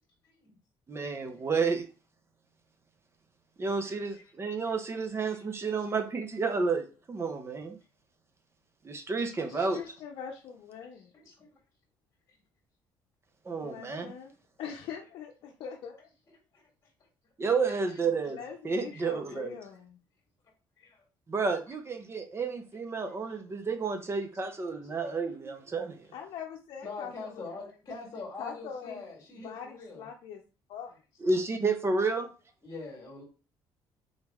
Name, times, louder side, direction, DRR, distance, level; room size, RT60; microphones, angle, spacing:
voice 1, 0.2-0.6 1.2-1.6 3.8-4.4 4.6-6.1 6.6-6.9 9.3-10.0 11.1-11.5 12.3-12.4 13.7-13.8 15.0-15.1 15.4-15.5 16.0-16.6 17.0-17.1 17.7-18.6 18.9-19.5 20.8-21.0 21.7-21.8 23.1-23.4 24.2-24.9 25.2-25.3 26.0-26.1 26.8-30.1 30.9-31.2 32.1-33.2, left 3 dB, 30° left, -2 dB, 1.8 m, -47 dB
voice 2, 0.9-1.9 3.6-7.8 8.8-9.8 13.4-14.1 17.4-18.4 18.6-19.5 21.3-26.0 31.2-32.3, right 4 dB, 30° right, 7 dB, 0.9 m, -31 dB
voice 3, 9.4-11.1 13.6-14.3 14.6-16.1 18.3-20.0 26.1-27.3 28.4-29.0 29.3-30.4 30.7-30.9, left 7 dB, 70° left, 0 dB, 0.6 m, -42 dB
4.0 x 3.1 x 3.5 m, 0.33 s
cardioid pair, 105°, 9 cm